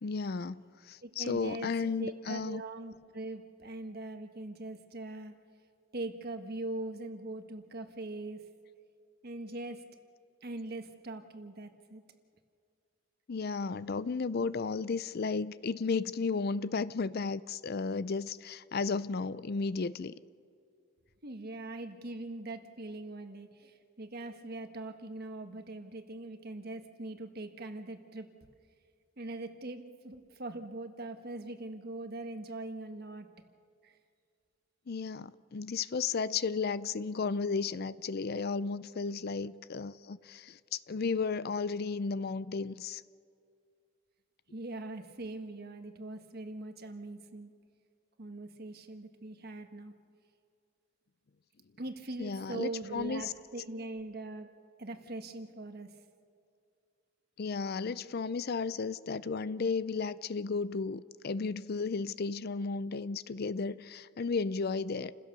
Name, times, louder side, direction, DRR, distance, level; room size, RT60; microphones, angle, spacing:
voice 1, 0.0-2.6 13.3-20.1 34.9-43.0 52.2-53.3 57.4-65.1, left 4 dB, 50° left, 0.4 m, -34 dB
voice 2, 1.0-5.3 5.9-8.4 9.2-9.8 10.4-12.0 21.2-28.3 29.2-33.3 33.8-34.0 44.5-47.5 48.2-49.9 51.8-54.5 54.8-55.9, right 2 dB, 45° right, 1.4 m, -41 dB
29.0 x 16.0 x 6.9 m
head